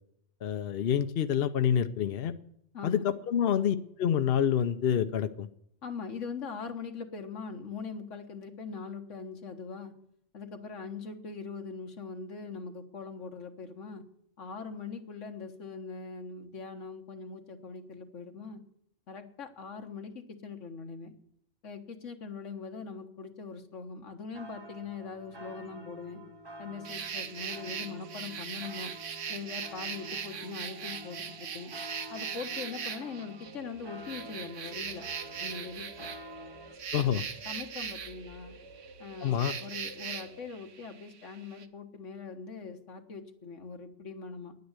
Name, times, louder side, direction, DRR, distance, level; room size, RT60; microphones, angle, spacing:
voice 1, 0.4-2.3 2.8-5.5 36.9-37.2 39.2-39.5, left 9 dB, 60° left, 10 dB, 0.8 m, -27 dB
voice 2, 2.7-3.0 5.8-9.9 10.3-14.0 14.4-18.6 19.1-21.1 21.6-26.2 26.6-28.9 29.3-31.7 32.1-35.0 35.4-36.1 37.0-37.1 37.4-38.5 39.0-44.5, left 5 dB, 85° left, 5 dB, 1.7 m, -41 dB
sound 1, 24.3-36.8, right 1 dB, 25° right, 0.8 m, -48 dB
sound 2, 26.8-41.7, right 7 dB, 85° right, 1.3 m, -40 dB
sound 3, 30.0-40.5, right 1 dB, 60° right, 1.8 m, -52 dB
10.0 x 9.4 x 8.0 m, 0.71 s
omnidirectional pair, 1.2 m